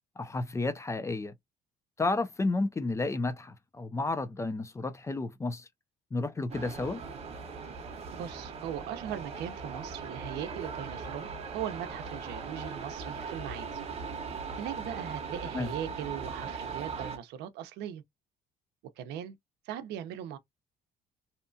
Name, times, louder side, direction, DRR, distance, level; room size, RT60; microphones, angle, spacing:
voice 1, 0.2-1.3 2.0-5.7 6.1-7.0 15.5-15.7, left 3 dB, 15° left, 0.4 m, -31 dB
sound 1, 6.5-17.2, right 5 dB, 40° right, 0.7 m, -39 dB
voice 2, 8.1-11.3 11.5-13.8 14.6-18.0 19.0-19.4 19.6-20.4, right 10 dB, 85° right, 0.6 m, -39 dB
2.8 x 2.2 x 2.5 m
cardioid pair, 110°, 17 cm